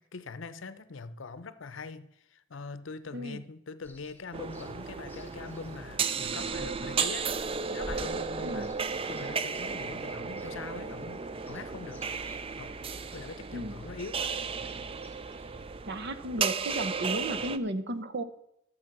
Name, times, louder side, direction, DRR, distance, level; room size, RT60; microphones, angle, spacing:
voice 1, 0.0-8.7 9.1-12.0 12.6-12.8 13.1-14.3, left 4 dB, 65° left, 0.7 m, -43 dB
sound 1, 3.8-15.7, left 1 dB, 10° left, 1.1 m, -52 dB
sound 2, 4.3-17.6, right 5 dB, 25° right, 0.4 m, -34 dB
voice 2, 15.9-18.2, right 1 dB, 55° right, 0.8 m, -34 dB
12.5 x 7.2 x 6.0 m
head